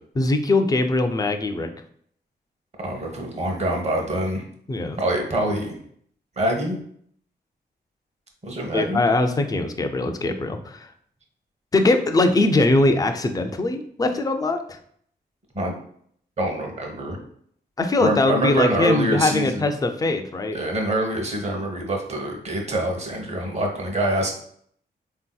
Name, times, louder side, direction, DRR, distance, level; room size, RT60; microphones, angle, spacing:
voice 1, 0.2-1.7 4.7-5.0 8.7-10.9 11.7-14.8 17.8-20.6, left 2 dB, 20° left, 6 dB, 0.4 m, -21 dB
voice 2, 2.8-4.4 5.0-5.8 6.4-6.8 8.4-9.0 15.5-15.7 16.4-17.2 18.0-19.7 20.5-24.3, right 1 dB, 40° right, 1 dB, 0.9 m, -25 dB
3.7 x 2.7 x 2.2 m, 0.63 s
cardioid pair, 70°, 18 cm